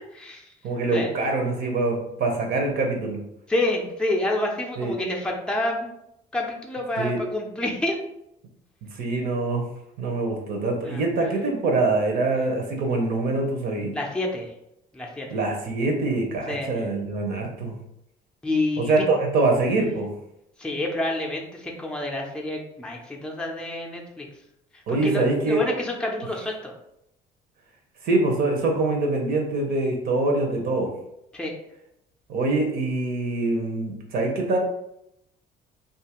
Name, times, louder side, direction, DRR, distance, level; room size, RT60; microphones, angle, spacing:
voice 1, 0.1-0.4 0.9-1.1 3.5-5.9 6.3-8.0 10.8-11.0 13.9-14.5 14.9-15.4 16.5-16.7 18.4-19.0 20.6-24.3 24.7-26.7 31.3-31.6, left 1 dB, 5° left, 0 dB, 0.5 m, -28 dB
voice 2, 0.6-3.2 4.8-4.9 7.0-7.2 8.8-9.6 10.0-14.0 15.3-17.7 18.8-20.1 24.9-25.6 28.0-30.9 32.3-34.6, right 2 dB, 65° right, 2 dB, 0.7 m, -24 dB
2.6 x 2.4 x 2.9 m, 0.79 s
cardioid pair, 110°, 17 cm